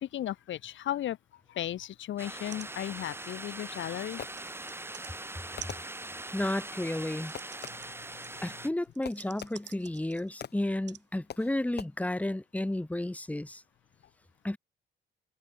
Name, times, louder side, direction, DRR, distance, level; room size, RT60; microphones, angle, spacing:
voice 1, 0.0-1.2 1.5-4.2, left 12 dB, 70° left, 1.7 m, -35 dB
sound 1, 2.2-8.7, right 2 dB, 10° right, 2.7 m, -42 dB
sound 2, 2.5-2.7 3.0-5.1 5.6-10.4 10.9-11.0 11.8-11.9, right 10 dB, 65° right, 2.8 m, -50 dB
Fireworks, 4.2-4.8 5.6-6.4 7.3-8.1 9.0-9.9 10.4-10.8 11.3-11.8, left 9 dB, 55° left, 1.7 m, -45 dB
voice 2, 6.3-7.3 8.4-13.6 14.4-14.6, left 1 dB, 5° left, 2.0 m, -32 dB
cardioid pair, 90°, 20 cm